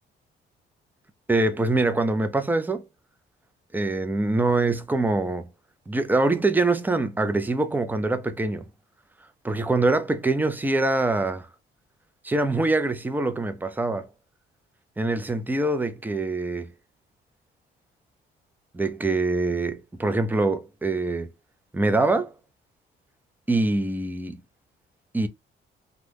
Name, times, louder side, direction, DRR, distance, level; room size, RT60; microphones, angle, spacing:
voice 1, 1.3-2.8 3.7-5.5 5.9-8.7 9.4-11.5 12.2-14.1 15.0-16.7 18.7-21.3 21.7-22.3 23.5-24.4 25.1-25.3, right 2 dB, 10° right, 0.5 m, -24 dB
2.6 x 2.3 x 3.4 m
cardioid pair, 90°, 20 cm